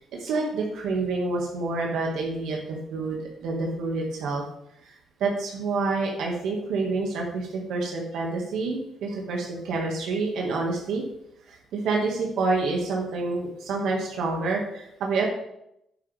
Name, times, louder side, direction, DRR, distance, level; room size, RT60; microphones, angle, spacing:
voice 1, 0.0-4.4 4.8-4.9 5.2-11.0 11.5-15.3, right 3 dB, 80° right, -1 dB, 2.2 m, -28 dB
10.0 x 8.4 x 3.6 m, 0.79 s
cardioid pair, 90°, 0 cm